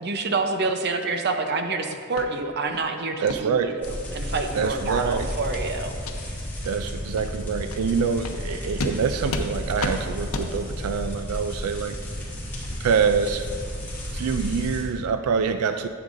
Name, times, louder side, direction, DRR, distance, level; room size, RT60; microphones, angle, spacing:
voice 1, 0.0-6.0, right 3 dB, 50° right, 5 dB, 0.6 m, -27 dB
sound 1, 2.2-2.3 2.7-2.8 3.3-3.4 3.8-3.9 4.4-4.5 4.9-5.1 5.5-5.7 6.0-6.2 6.6-6.7 7.2-7.3 7.7-7.8 8.2-8.4 8.8-8.9 9.3-9.5 9.8-10.0 10.3-10.5, left 2 dB, 85° left, 0.7 m, -31 dB
voice 2, 3.2-3.8 4.6-5.3 6.6-12.0 12.8-13.5 14.1-15.9, right 6 dB, 90° right, 9 dB, 0.4 m, -25 dB
sound 2, 3.8-14.8, equal, 10° left, 2.2 m, -33 dB
12.0 x 7.9 x 2.6 m, 2.2 s
head